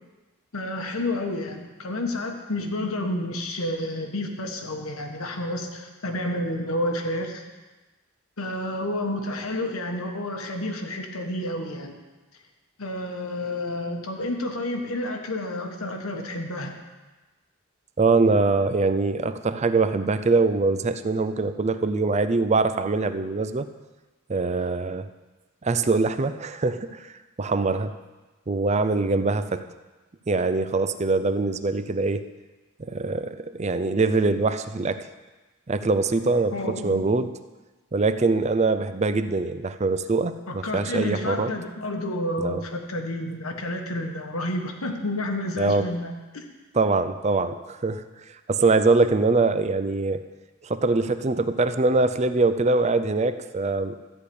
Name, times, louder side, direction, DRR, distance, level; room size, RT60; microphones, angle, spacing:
voice 1, 0.5-7.5 8.4-12.0 12.8-16.8 36.5-37.1 40.5-46.5, left 1 dB, 85° left, 3 dB, 1.4 m, -30 dB
voice 2, 18.0-23.7 24.3-25.1 25.6-27.1 27.4-27.9 28.5-29.6 30.3-32.2 32.8-35.0 35.7-37.3 37.9-41.5 42.4-42.6 45.6-45.9 46.7-48.0 48.5-50.2 50.6-54.0, right 3 dB, 30° right, 11 dB, 0.5 m, -23 dB
13.5 x 5.0 x 8.6 m, 1.2 s
head